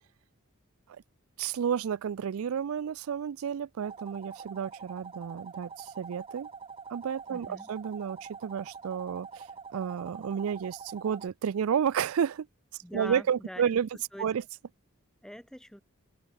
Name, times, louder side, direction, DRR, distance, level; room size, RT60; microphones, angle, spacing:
voice 1, 1.4-6.5 6.9-12.5 12.9-13.9 14.2-14.4, right 8 dB, 80° right, 0.4 m, -31 dB
sound 1, 3.8-11.3, right 5 dB, 25° right, 0.7 m, -45 dB
voice 2, 7.3-7.7 12.8-14.3 15.2-15.8, equal, 5° left, 3.1 m, -44 dB
head